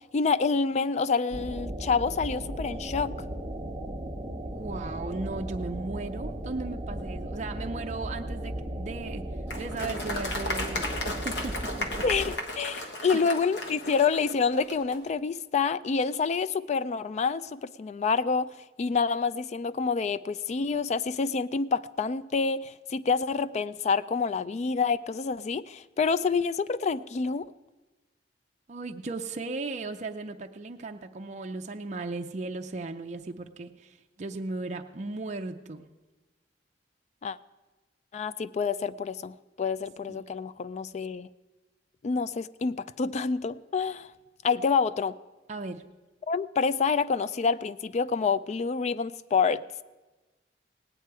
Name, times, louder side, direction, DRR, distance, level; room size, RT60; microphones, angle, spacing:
voice 1, 0.1-3.1 12.0-18.5 18.8-27.5 37.2-37.4 38.1-41.3 42.0-44.1 44.4-45.2 46.3-49.6, left 5 dB, 40° left, 17 dB, 0.3 m, -27 dB
sound 1, 1.3-12.4, right 1 dB, 25° right, 0.9 m, -36 dB
voice 2, 4.5-9.2 9.6-12.0 12.8-13.2 28.7-35.9 40.1-40.3 45.5-45.8, right 3 dB, 40° right, 4 dB, 0.5 m, -36 dB
Applause, 9.5-15.0, left 1 dB, 70° left, 1.3 m, -35 dB
18.0 x 9.0 x 4.7 m, 1.2 s
head